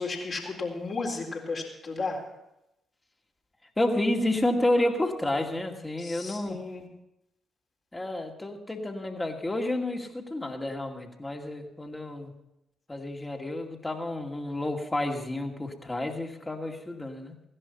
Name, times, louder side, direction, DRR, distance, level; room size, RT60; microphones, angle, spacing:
voice 1, 0.0-2.2 6.0-6.9, left 3 dB, 45° left, -1 dB, 3.9 m, -34 dB
voice 2, 3.8-6.6 7.9-12.3 12.9-17.3, left 1 dB, 20° left, 2 dB, 2.4 m, -30 dB
16.5 x 11.0 x 5.8 m, 0.87 s
figure-of-eight pair, 40°, 0 cm